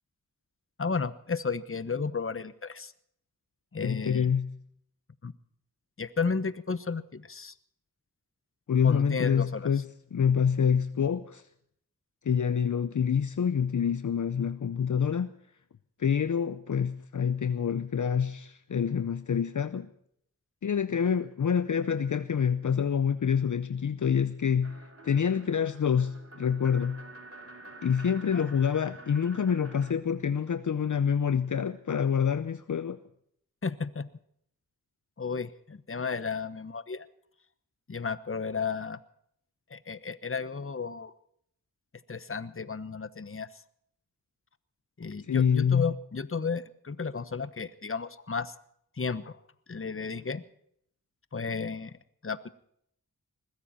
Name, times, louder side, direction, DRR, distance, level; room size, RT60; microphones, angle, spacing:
voice 1, 0.8-2.9 3.7-4.3 5.2-5.3 6.0-7.5 8.8-9.7 28.3-28.5 33.6-34.1 35.2-37.1 37.9-39.0 39.7-41.1 42.1-43.5 45.0-48.5 49.0-49.4 49.7-50.4 51.3-51.9 52.2-52.5, left 5 dB, 40° left, 1.1 m, -33 dB
voice 2, 3.8-4.5 8.7-9.8 10.1-11.4 12.2-15.3 16.0-19.9 20.6-27.0 27.8-33.0 45.3-45.9, left 7 dB, 60° left, 0.7 m, -27 dB
sound 1, 24.6-29.9, right 2 dB, 40° right, 2.7 m, -49 dB
21.0 x 15.0 x 4.2 m
cardioid pair, 55°, 34 cm